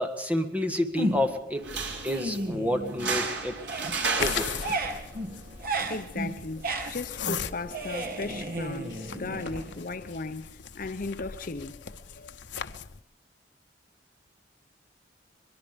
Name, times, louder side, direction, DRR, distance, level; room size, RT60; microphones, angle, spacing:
voice 1, 0.0-1.8 2.0-3.6 4.0-4.8, left 1 dB, 10° right, 1.7 m, -30 dB
sound 1, 1.0-1.5 1.9-3.3 3.5-10.1, right 1 dB, 55° right, 2.3 m, -34 dB
sound 2, 1.6-8.5, right 4 dB, 85° right, 3.7 m, -36 dB
sound 3, 4.2-13.0, left 7 dB, 80° left, 0.9 m, -38 dB
voice 2, 5.9-12.3, left 3 dB, 50° left, 0.8 m, -37 dB
23.0 x 22.0 x 5.2 m
head